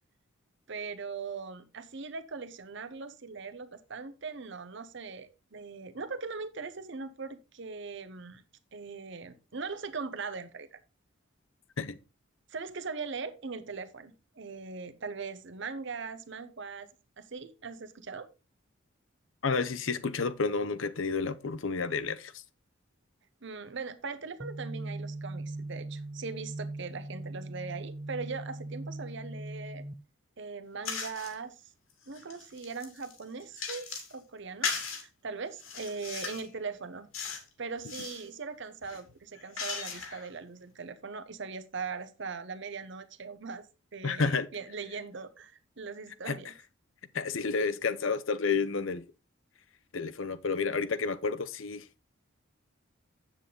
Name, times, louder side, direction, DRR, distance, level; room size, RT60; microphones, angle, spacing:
voice 1, 0.7-8.4 8.7-10.8 12.5-16.9 17.2-18.3 23.4-29.8 30.4-31.6 32.1-37.1 37.6-43.7 43.9-46.5, right 4 dB, 60° right, 0.8 m, -40 dB
voice 2, 19.4-22.4 44.0-44.5 46.2-46.4 47.1-49.1 49.9-51.9, left 4 dB, 70° left, 0.7 m, -30 dB
sound 1, 24.4-29.9, right 2 dB, 15° right, 0.3 m, -40 dB
sound 2, 30.8-31.3 31.9-34.1 34.6-35.0 35.6-36.5 37.1-37.5 37.8-38.3 38.8-40.3, left 5 dB, 90° left, 2.5 m, -37 dB
8.4 x 7.4 x 3.8 m
head